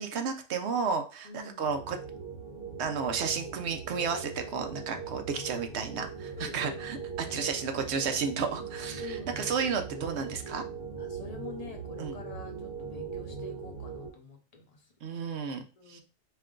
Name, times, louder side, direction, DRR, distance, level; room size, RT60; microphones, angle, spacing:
voice 1, 0.0-2.0 2.8-10.6 12.0-12.2 15.0-15.6 15.9-16.0, right 5 dB, 60° right, 6 dB, 0.9 m, -32 dB
voice 2, 1.2-1.8 6.3-7.5 9.0-9.4 11.0-14.9 15.8-16.0, left 4 dB, 35° left, 2 dB, 0.7 m, -46 dB
sound 1, 1.6-14.1, right 5 dB, 40° right, 1.1 m, -40 dB
4.5 x 2.2 x 3.7 m, 0.32 s
omnidirectional pair, 1.3 m